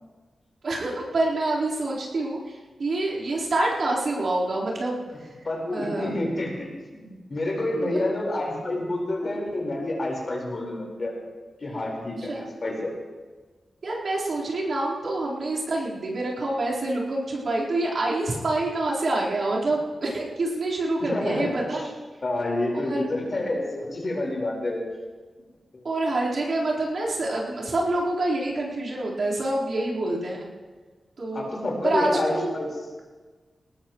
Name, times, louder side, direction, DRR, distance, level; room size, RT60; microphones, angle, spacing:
voice 1, 0.6-5.3 5.7-6.1 7.7-8.0 12.2-12.5 13.8-22.0 22.7-23.1 25.8-30.5 31.2-31.5 31.8-32.5, right 2 dB, 60° right, -6 dB, 4.3 m, -27 dB
voice 2, 5.4-6.7 6.9-11.1 11.6-12.9 21.0-21.5 22.2-24.8 25.7-25.8 31.3-32.7, left 1 dB, 40° left, -2 dB, 4.7 m, -28 dB
21.5 x 19.5 x 3.2 m, 1.4 s
wide cardioid pair, 135°, 0 cm